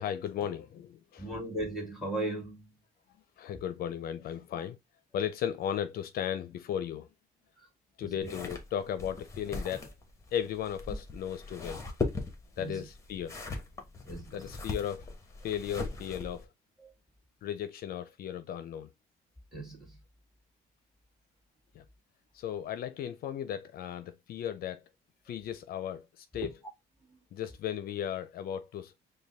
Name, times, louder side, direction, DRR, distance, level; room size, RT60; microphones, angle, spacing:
voice 1, 0.0-1.3 3.4-4.8 5.1-7.1 8.0-9.9 10.3-11.8 12.6-13.6 14.3-15.1 15.4-16.5 17.4-18.9 21.7-21.8 22.3-24.8 25.3-26.5 27.3-28.9, left 9 dB, 60° left, 0.5 m, -36 dB
voice 2, 1.2-2.7 7.6-7.7 8.0-8.3 12.6-12.8 14.1-14.4 16.8-16.9 19.5-19.9, right 2 dB, ahead, 2.0 m, -37 dB
sound 1, 8.2-16.4, left 3 dB, 15° left, 1.2 m, -39 dB
5.1 x 2.3 x 3.4 m
cardioid pair, 110°, 17 cm